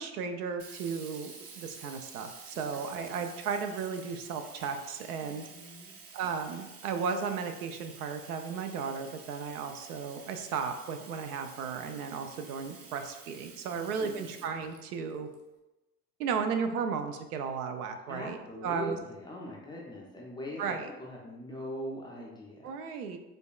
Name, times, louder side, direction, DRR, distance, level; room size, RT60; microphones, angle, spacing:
voice 1, 0.0-5.4 6.1-15.3 16.2-18.4 18.6-19.0 20.6-20.9 22.6-23.2, right 6 dB, 70° right, 7 dB, 0.5 m, -35 dB
Sink (filling or washing), 0.6-15.3, right 4 dB, 50° right, 0.8 m, -50 dB
voice 2, 5.2-5.9 13.7-14.3 18.1-22.7, equal, 10° left, -3 dB, 0.4 m, -42 dB
5.1 x 2.2 x 2.3 m, 1.0 s
figure-of-eight pair, 75°, 47 cm